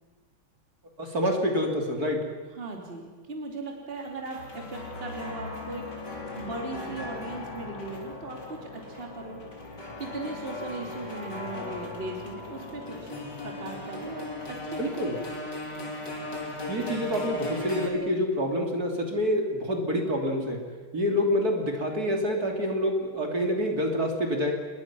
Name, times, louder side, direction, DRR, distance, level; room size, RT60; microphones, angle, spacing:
voice 1, 1.0-2.2 14.8-15.2 16.7-20.6 20.9-24.5, equal, 45° right, 1 dB, 3.5 m, -27 dB
voice 2, 2.5-9.4 10.0-13.1 13.4-14.9, right 2 dB, 25° right, 1 dB, 2.9 m, -38 dB
sound 1, 4.0-17.9, left 2 dB, 50° left, 4.1 m, -38 dB
27.5 x 22.0 x 6.1 m, 1.4 s
omnidirectional pair, 2.3 m